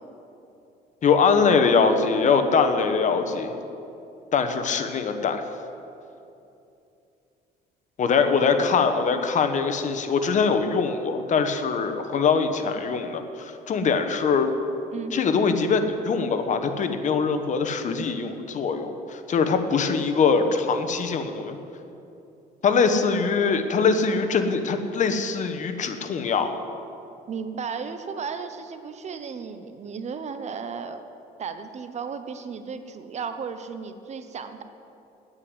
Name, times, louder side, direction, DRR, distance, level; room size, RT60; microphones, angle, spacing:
voice 1, 1.0-3.5 4.3-5.4 8.0-14.5 15.1-21.6 22.6-26.5, left 5 dB, 45° left, 7 dB, 1.2 m, -22 dB
voice 2, 27.3-31.0 31.4-34.6, right 6 dB, 40° right, 9 dB, 0.9 m, -34 dB
9.7 x 9.7 x 9.7 m, 2.8 s
cardioid pair, 110°, 17 cm